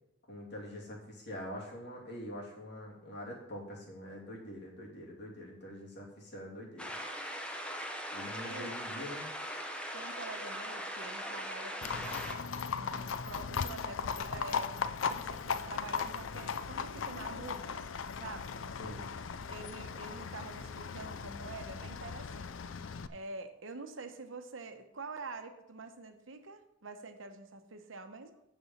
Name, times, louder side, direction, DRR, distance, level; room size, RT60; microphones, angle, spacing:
voice 1, 0.3-6.9 8.1-9.3 18.8-19.1, equal, 60° left, -3 dB, 2.9 m, -44 dB
sound 1, 6.8-12.4, equal, 5° left, 0.8 m, -40 dB
voice 2, 8.3-8.8 9.9-14.7 15.1-17.8 18.2-18.5 19.5-28.4, right 3 dB, 85° right, 7 dB, 1.0 m, -46 dB
Livestock farm animals working animals, 11.8-23.1, left 6 dB, 80° left, 0.5 m, -38 dB
7.0 x 6.8 x 7.2 m, 0.84 s
head